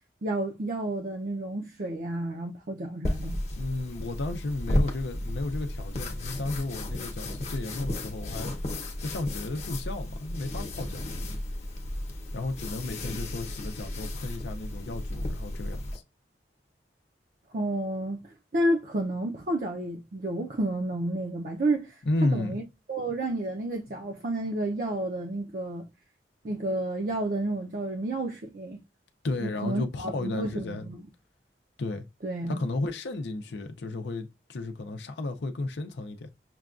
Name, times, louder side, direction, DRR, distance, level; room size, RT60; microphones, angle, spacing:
voice 1, 0.2-3.4 17.5-22.6 22.9-25.8 26.4-28.8 29.4-31.0 32.2-32.5, right 1 dB, 50° right, 0.5 m, -31 dB
sound 1, 3.0-16.0, left 1 dB, 40° left, 0.8 m, -33 dB
voice 2, 3.5-8.5 9.0-11.1 12.3-16.0 22.1-22.6 29.2-30.9 31.8-32.1 32.5-36.3, left 2 dB, 80° left, 0.5 m, -33 dB
6.0 x 2.3 x 2.4 m
head